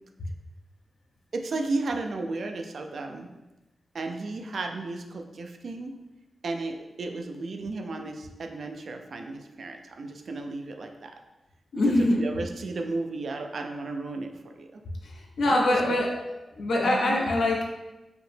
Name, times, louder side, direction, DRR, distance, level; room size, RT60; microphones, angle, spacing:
voice 1, 1.3-3.3 3.9-5.9 6.4-11.1 11.9-14.8 15.4-16.0 16.8-17.2, right 3 dB, 65° right, 4 dB, 0.4 m, -34 dB
voice 2, 11.7-12.3 15.0-16.2 16.6-17.6, left 1 dB, 80° left, -2 dB, 0.8 m, -24 dB
4.8 x 2.1 x 3.2 m, 1.0 s
cardioid pair, 85°, 0 cm